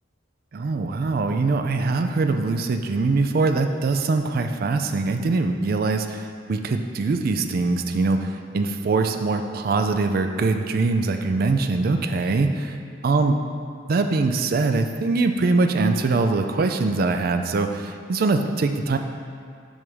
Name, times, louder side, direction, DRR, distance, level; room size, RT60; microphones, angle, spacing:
voice 1, 0.5-12.7 13.0-13.4 13.9-19.0, right 3 dB, 50° right, 6 dB, 0.4 m, -22 dB
6.2 x 3.5 x 6.1 m, 2.2 s
head